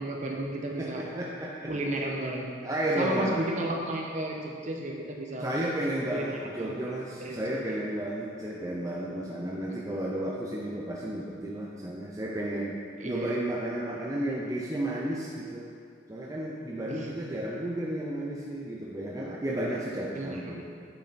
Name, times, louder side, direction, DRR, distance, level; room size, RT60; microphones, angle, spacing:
voice 1, 0.0-1.0 1.7-2.5 3.0-5.5 6.1-7.4 7.7-7.8 13.0-13.4 16.9-17.1 20.1-20.5, right 1 dB, 40° right, -1 dB, 1.0 m, -33 dB
voice 2, 0.8-1.7 2.6-3.4 5.4-15.7 16.1-20.7, right 1 dB, 20° right, -4 dB, 0.6 m, -32 dB
8.5 x 6.7 x 4.1 m, 2.2 s
head